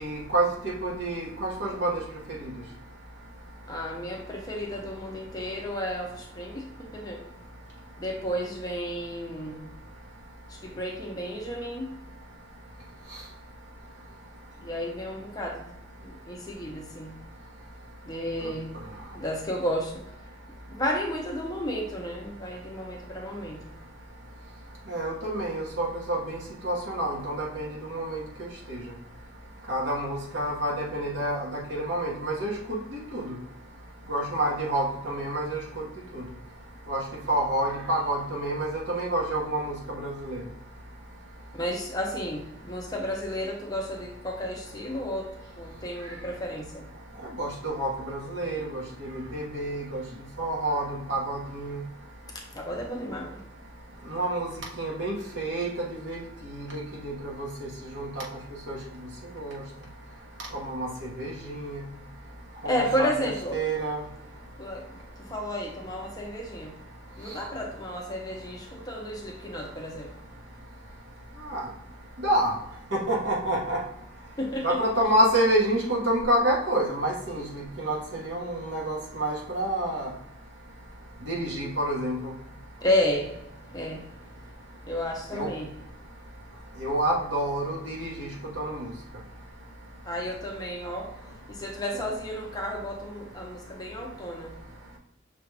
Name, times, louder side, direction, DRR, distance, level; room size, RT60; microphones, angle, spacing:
voice 1, 0.0-1.9 2.4-2.5 24.9-26.4 26.6-28.2 28.7-28.8 29.7-32.8 33.1-33.3 34.1-35.6 36.1-36.2 36.9-37.0 37.3-40.4 47.4-50.0 50.4-51.8 54.1-54.5 54.8-55.7 56.0-56.2 56.5-57.7 57.9-58.2 58.7-58.8 59.3-59.6 60.5-61.8 62.6-64.0 71.4-71.6 72.2-72.5 72.9-73.8 74.6-78.0 78.2-80.1 81.2-82.3 85.3-85.5 86.8-88.9, right 1 dB, 60° right, -3 dB, 1.1 m, -28 dB
voice 2, 3.6-7.2 8.0-9.7 10.5-11.9 14.6-15.7 16.0-17.2 18.1-18.7 19.1-20.0 20.7-23.7 41.5-45.3 45.6-46.9 52.5-53.4 62.6-63.6 64.6-66.8 67.2-70.4 74.4-74.8 82.8-83.4 83.7-84.1 84.8-85.7 90.1-94.6, equal, 20° left, 0 dB, 0.6 m, -32 dB
5.8 x 2.3 x 3.3 m, 0.82 s
head